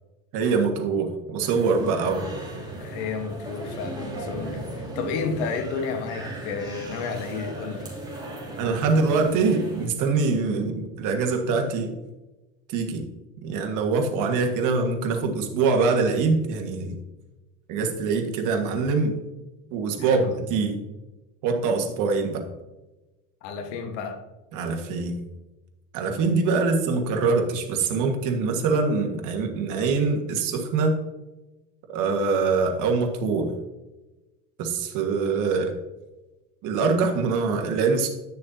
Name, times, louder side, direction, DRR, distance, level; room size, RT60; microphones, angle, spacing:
voice 1, 0.3-2.3 8.6-11.9 12.7-13.0 13.4-17.0 17.7-19.2 19.7-20.8 21.4-22.4 24.5-25.2 25.9-31.0 31.9-33.5 34.6-35.7 36.6-38.1, right 4 dB, 60° right, 1.6 m, -24 dB
sound 1, 1.4-9.9, right 1 dB, 10° right, 2.8 m, -37 dB
voice 2, 2.8-7.9 20.0-20.3 23.4-24.2, left 5 dB, 80° left, 1.4 m, -31 dB
10.0 x 6.5 x 2.8 m
supercardioid pair, 110°, 34 cm